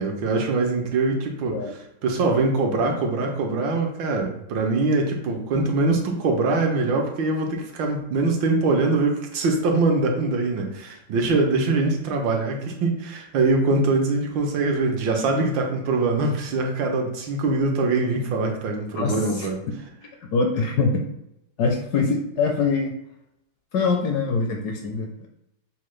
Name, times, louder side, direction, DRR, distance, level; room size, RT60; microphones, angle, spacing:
voice 1, 0.0-1.6 2.0-19.6, right 3 dB, 80° right, 2 dB, 1.5 m, -23 dB
voice 2, 19.0-19.5 20.2-21.0 21.6-23.0 23.7-25.3, left 4 dB, 70° left, 2 dB, 1.0 m, -24 dB
5.6 x 2.2 x 3.1 m, 0.83 s
omnidirectional pair, 2.1 m